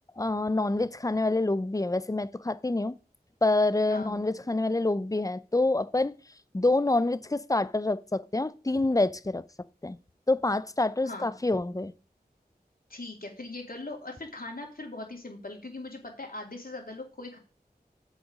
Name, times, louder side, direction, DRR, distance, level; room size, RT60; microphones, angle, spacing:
voice 1, 0.2-2.9 3.4-6.1 6.5-9.4 9.8-10.0 10.3-11.9, left 2 dB, 20° left, 0.5 m, -27 dB
voice 2, 12.9-17.4, left 2 dB, 65° left, 2.9 m, -40 dB
7.6 x 6.5 x 5.1 m
wide cardioid pair, 45°, 16 cm